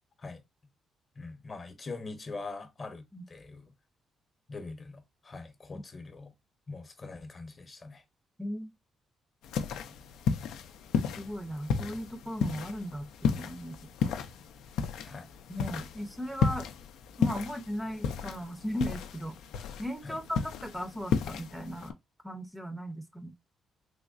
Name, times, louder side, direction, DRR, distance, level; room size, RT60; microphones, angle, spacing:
voice 1, 1.2-3.7 4.5-6.3 6.7-8.0 15.0-15.3 20.0-20.2, left 3 dB, 35° left, 0.8 m, -43 dB
voice 2, 8.4-8.7 11.2-14.2 15.5-16.7 17.2-19.3 19.8-21.9 22.2-23.3, equal, 5° right, 0.5 m, -37 dB
sound 1, 9.4-21.9, left 6 dB, 85° left, 0.4 m, -33 dB
3.4 x 3.0 x 2.4 m
cardioid pair, 90°, 0 cm